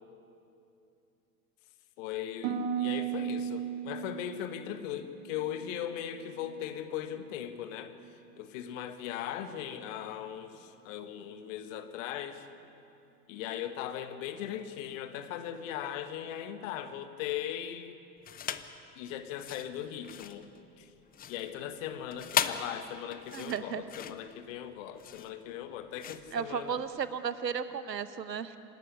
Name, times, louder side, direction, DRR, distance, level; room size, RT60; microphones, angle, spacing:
voice 1, 2.0-7.9 8.4-12.5 13.3-17.9 19.0-20.5 20.8-20.9 21.3-26.8, left 10 dB, 50° left, 10 dB, 1.7 m, -39 dB
Harp, 2.4-6.5 6.8-7.4 7.9-8.2, right 8 dB, 45° right, 2.4 m, -37 dB
sound 1, 18.2-18.8 19.3-27.1, left 9 dB, 20° left, 0.7 m, -37 dB
voice 2, 23.3-23.8 26.3-28.6, right 7 dB, 85° right, 13 dB, 1.1 m, -34 dB
26.5 x 12.0 x 9.8 m, 2.7 s
hypercardioid pair, 95°, 48 cm